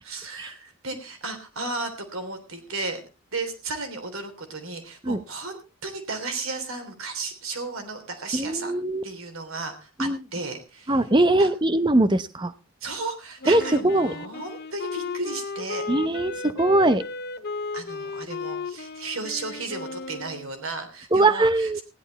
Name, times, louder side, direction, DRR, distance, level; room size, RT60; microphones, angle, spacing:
voice 1, 0.0-3.0 3.3-8.7 9.0-11.0 11.4-11.5 12.8-15.8 17.7-21.8, right 3 dB, 70° right, 7 dB, 3.3 m, -34 dB
voice 2, 8.3-9.0 10.0-10.2 10.9-12.5 13.5-14.1 15.9-17.0 21.1-21.8, right 2 dB, 20° right, 14 dB, 0.7 m, -21 dB
Wind instrument woodwind instrument, 13.4-20.5, left 4 dB, 45° left, 0.6 m, -35 dB
15.5 x 11.0 x 4.1 m, 0.30 s
head